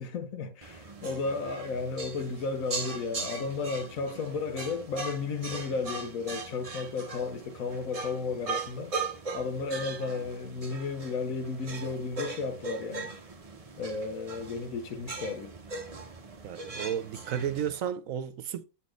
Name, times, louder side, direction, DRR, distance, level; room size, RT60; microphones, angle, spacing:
voice 1, 0.0-8.9 9.3-13.1 13.8-15.6, left 4 dB, 75° left, 1.3 m, -33 dB
sound 1, 0.6-17.8, right 4 dB, 30° right, 0.8 m, -40 dB
voice 2, 16.4-18.7, right 9 dB, 75° right, 1.1 m, -33 dB
8.0 x 4.2 x 3.1 m
omnidirectional pair, 1.4 m